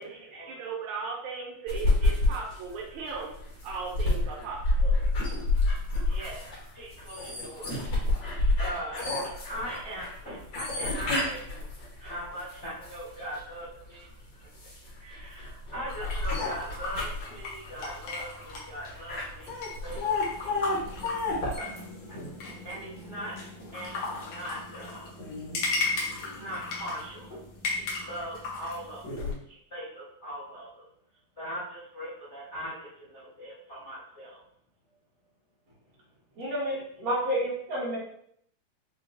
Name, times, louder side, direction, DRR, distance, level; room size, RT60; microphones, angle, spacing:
voice 1, 0.0-3.3 3.6-5.0, right 5 dB, 80° right, -1 dB, 2.2 m, -37 dB
sound 1, 1.7-13.4 13.9-21.6, left 2 dB, 50° left, 1.7 m, -29 dB
voice 2, 6.0-6.4 6.7-11.6 12.0-14.1 15.0-20.8 21.6-21.7 22.1-22.2 22.6-23.3 23.7-25.1 26.2-27.4 27.7-29.2 29.4-30.9 31.4-34.4, equal, 85° left, -9 dB, 0.6 m, -40 dB
sound 2, 15.9-29.3, left 3 dB, 70° left, 2.0 m, -37 dB
sound 3, 20.0-29.3, equal, 30° left, 1.6 m, -49 dB
voice 3, 36.4-38.0, equal, 50° right, -6 dB, 1.1 m, -30 dB
5.4 x 2.8 x 2.6 m, 0.68 s
omnidirectional pair, 3.4 m